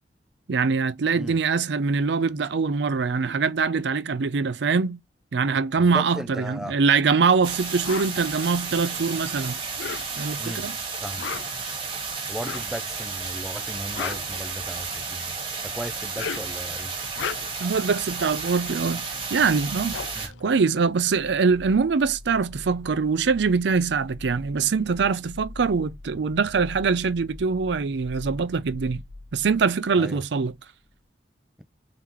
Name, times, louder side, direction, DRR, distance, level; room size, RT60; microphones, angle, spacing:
voice 1, 0.5-5.0 5.3-9.6 10.2-10.7 17.6-29.0 29.3-30.5, right 5 dB, 65° right, 0.5 m, -23 dB
voice 2, 5.9-6.8 10.4-10.7 11.0-11.3 12.3-15.3 15.6-16.9 20.1-20.3 30.0-30.2, equal, 5° right, 0.4 m, -36 dB
sound 1, 7.4-20.3, right 4 dB, 30° right, 1.6 m, -32 dB
sound 2, 7.8-8.1 9.6-10.4 11.1-11.6 12.4-12.8 13.7-15.0 16.0-16.6 17.0-17.7 19.3-19.4 19.6-21.3, left 8 dB, 70° left, 0.3 m, -35 dB
sound 3, 16.8-30.6 30.9-31.0, left 1 dB, 85° right, 1.5 m, -46 dB
3.7 x 3.6 x 2.9 m
head